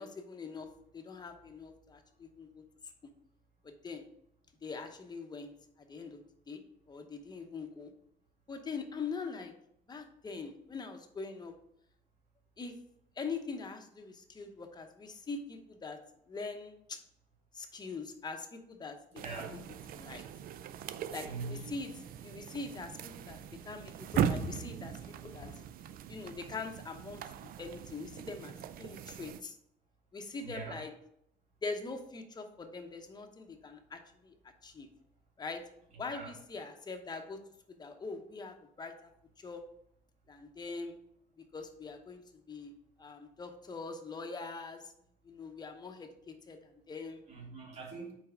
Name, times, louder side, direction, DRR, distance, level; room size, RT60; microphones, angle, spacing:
voice 1, 0.0-2.6 3.6-4.1 4.6-5.5 5.8-6.2 6.5-6.6 6.9-7.9 8.5-9.5 9.9-11.6 12.6-12.7 13.2-16.0 16.3-17.0 17.5-19.0 19.3-19.6 19.9-20.2 21.1-21.9 22.2-23.4 23.6-25.7 26.1-29.6 30.1-30.9 31.6-34.3 34.6-34.9 35.4-35.6 36.0-37.4 37.7-39.1 39.4-39.6 40.3-41.0 41.4-42.2 42.5-42.7 43.0-44.9 45.2-47.2, left 4 dB, 25° left, 5 dB, 0.8 m, -43 dB
voice 2, 19.1-19.7 21.2-21.7 30.4-30.8 36.1-36.3 47.3-48.1, right 4 dB, 40° right, -4 dB, 2.4 m, -43 dB
sound 1, 19.2-29.4, right 9 dB, 60° right, 0.4 m, -39 dB
4.6 x 4.2 x 5.5 m, 0.74 s
cardioid pair, 110°, 17 cm